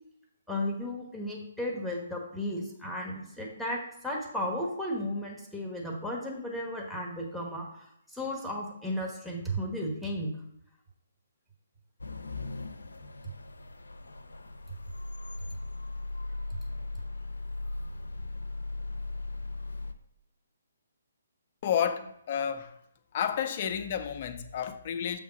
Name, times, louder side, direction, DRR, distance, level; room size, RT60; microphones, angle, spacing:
voice 1, 0.5-7.7 8.1-10.3, equal, ahead, 1.2 m, -34 dB
sound 1, 12.0-19.9, left 2 dB, 85° left, 0.6 m, -38 dB
voice 2, 21.6-22.7 23.1-25.2, left 8 dB, 40° left, 0.7 m, -31 dB
7.0 x 3.6 x 5.0 m
figure-of-eight pair, 140°, 0 cm